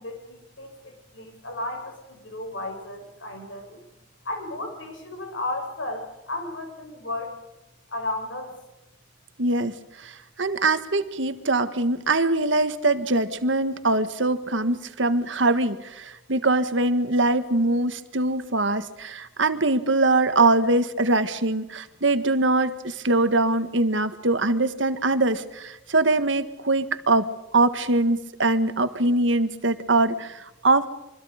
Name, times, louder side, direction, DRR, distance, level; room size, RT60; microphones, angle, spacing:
voice 1, 0.0-3.8 4.2-7.4 7.9-8.5, left 2 dB, 75° left, 3 dB, 7.1 m, -34 dB
voice 2, 9.4-9.7 10.0-27.3 27.5-30.9, right 2 dB, 65° right, 11 dB, 1.6 m, -23 dB
26.0 x 24.5 x 5.1 m, 0.95 s
head